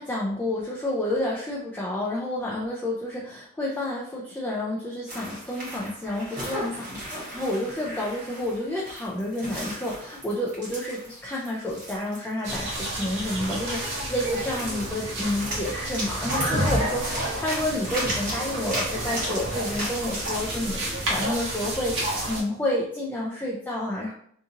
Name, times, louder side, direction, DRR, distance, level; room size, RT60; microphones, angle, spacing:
voice 1, 0.0-24.1, left 1 dB, 10° left, -5 dB, 0.3 m, -30 dB
sound 1, 5.1-22.2, right 1 dB, 40° right, 1.2 m, -37 dB
sound 2, 12.4-22.4, right 1 dB, 60° right, 0.9 m, -30 dB
2.7 x 2.6 x 2.5 m, 0.63 s
head